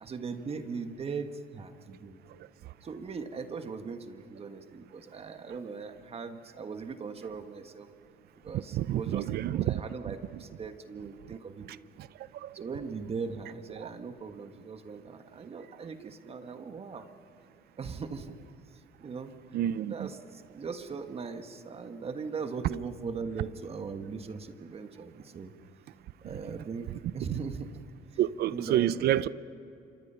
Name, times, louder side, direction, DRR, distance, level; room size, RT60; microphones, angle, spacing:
voice 1, 0.0-2.2 2.8-7.9 8.4-11.7 12.5-17.0 17.8-18.4 19.0-19.3 19.9-25.5 26.2-27.7 28.5-29.3, right 5 dB, 35° right, 8 dB, 1.5 m, -39 dB
voice 2, 8.5-9.8 12.4-12.5 13.8-13.9 19.5-20.1 27.3-27.4 28.2-29.3, right 12 dB, 70° right, 18 dB, 0.6 m, -28 dB
27.5 x 24.5 x 5.7 m, 2.9 s
cardioid pair, 110°, 17 cm